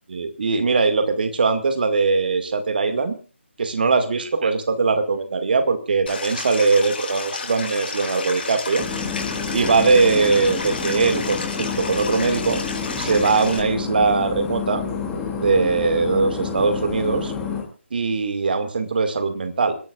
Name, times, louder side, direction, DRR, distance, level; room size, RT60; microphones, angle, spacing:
voice 1, 0.1-3.2 3.6-8.9 9.5-12.6 13.0-14.8 15.4-17.3 17.9-19.8, right 4 dB, 50° right, 9 dB, 2.1 m, -21 dB
Stream, 6.1-13.6, left 4 dB, 50° left, 4.2 m, -32 dB
sound 1, 8.8-17.6, left 5 dB, 10° left, 2.7 m, -29 dB
29.0 x 12.0 x 2.5 m, 0.36 s
figure-of-eight pair, 145°, 7 cm